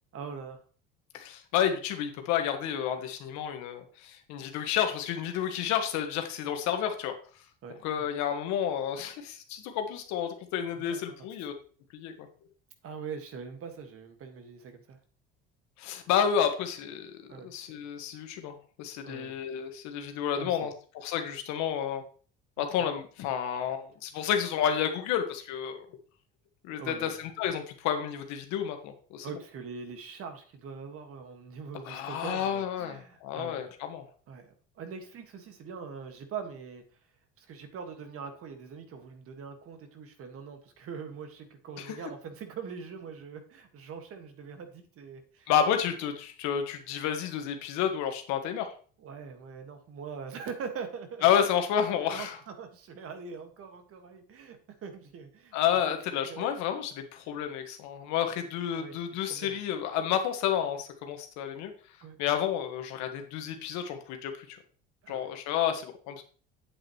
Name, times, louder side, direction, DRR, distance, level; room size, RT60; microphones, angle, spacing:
voice 1, 0.1-0.6 7.6-8.1 10.7-11.3 12.8-15.0 17.3-17.5 19.0-19.4 20.4-20.7 22.6-22.9 26.8-27.2 29.2-33.6 34.3-36.8 37.4-45.5 49.0-51.5 52.1-55.6 56.2-56.5 58.7-59.0 59.3-59.6 62.0-62.2 65.0-65.3, right 6 dB, 50° right, 6 dB, 1.8 m, -42 dB
voice 2, 1.1-7.1 7.8-11.5 11.9-12.3 15.8-22.0 22.6-25.8 26.6-29.3 31.8-34.0 41.8-41.9 45.5-48.7 51.2-52.4 55.5-61.7 62.2-64.6 65.1-66.2, left 9 dB, 70° left, 6 dB, 1.6 m, -30 dB
8.5 x 7.8 x 3.1 m, 0.41 s
supercardioid pair, 85°, 29 cm